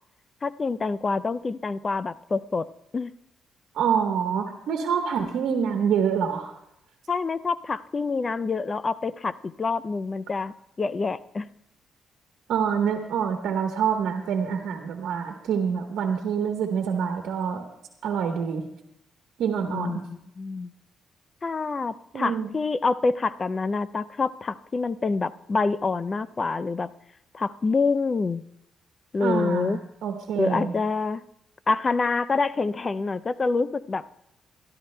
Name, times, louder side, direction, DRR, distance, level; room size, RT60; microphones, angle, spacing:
voice 1, 0.4-2.7 2.9-3.1 7.1-11.5 19.7-20.7 21.4-26.9 27.3-28.4 29.1-29.8 30.4-31.2 31.7-34.1, left 4 dB, 30° left, 17 dB, 0.4 m, -26 dB
voice 2, 3.7-6.5 12.5-17.6 18.0-18.6 19.4-20.0 22.1-22.5 29.2-30.7, right 7 dB, 80° right, 3 dB, 1.1 m, -26 dB
24.0 x 12.5 x 2.2 m, 0.81 s
cardioid pair, 90°, 0 cm